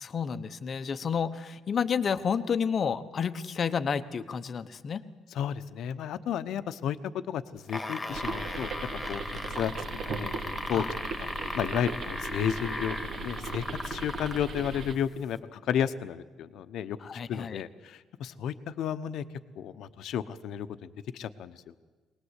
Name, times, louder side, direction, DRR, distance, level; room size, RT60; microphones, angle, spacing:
voice 1, 0.0-5.0 10.7-10.9 17.0-17.6, left 6 dB, 35° left, 11 dB, 0.9 m, -30 dB
voice 2, 5.3-8.7 9.1-9.7 10.0-10.8 11.2-11.3 11.5-19.2 19.6-21.7, left 9 dB, 65° left, 11 dB, 1.0 m, -33 dB
sound 1, 7.6-14.5 15.3-15.4, left 2 dB, 10° left, 1.7 m, -37 dB
sound 2, 8.1-15.0, right 3 dB, 45° right, 1.4 m, -37 dB
23.5 x 19.5 x 8.2 m, 1.3 s
cardioid pair, 150°, 0 cm